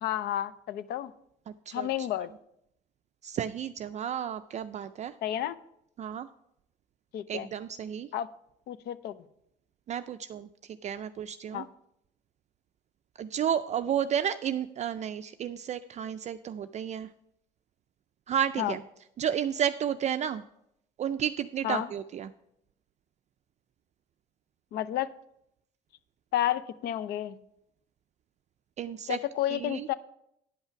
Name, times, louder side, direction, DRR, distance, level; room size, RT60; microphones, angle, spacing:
voice 1, 0.0-1.1 1.7-2.3 5.2-5.6 7.1-7.5 8.1-8.3 8.7-9.2 11.5-11.7 18.6-18.8 21.6-21.9 24.7-25.1 26.3-27.4 29.1-29.9, left 12 dB, 70° left, 15 dB, 0.6 m, -31 dB
voice 2, 1.5-2.1 3.2-5.1 6.0-6.3 7.3-8.1 9.9-10.5 10.8-11.7 13.2-17.1 18.3-18.8 19.2-20.4 21.0-22.3 28.8-29.2 29.5-29.9, right 9 dB, 45° right, 10 dB, 0.4 m, -32 dB
10.0 x 5.7 x 5.7 m, 0.77 s
cardioid pair, 110°, 17 cm